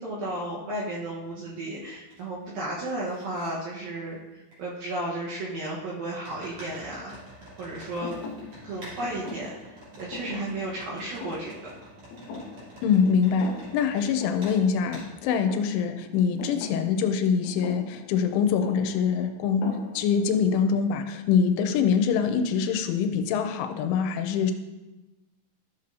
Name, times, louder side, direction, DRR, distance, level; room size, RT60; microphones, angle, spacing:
voice 1, 0.0-7.2 7.6-8.1 8.6-11.7, right 1 dB, 70° right, -5 dB, 2.3 m, -34 dB
sound 1, 0.7-0.8 1.4-2.2 2.5-3.5 4.5-4.6 6.2-14.1 14.4-14.6 14.9-15.1, equal, 35° right, 3.8 m, -47 dB
Thump thud, 8.0-13.0 13.3-13.9 14.2-20.3, left 4 dB, 70° left, 2.6 m, -41 dB
voice 2, 12.8-24.5, left 6 dB, 90° left, 7 dB, 3.1 m, -24 dB
13.5 x 6.8 x 2.6 m, 1.1 s
omnidirectional pair, 5.6 m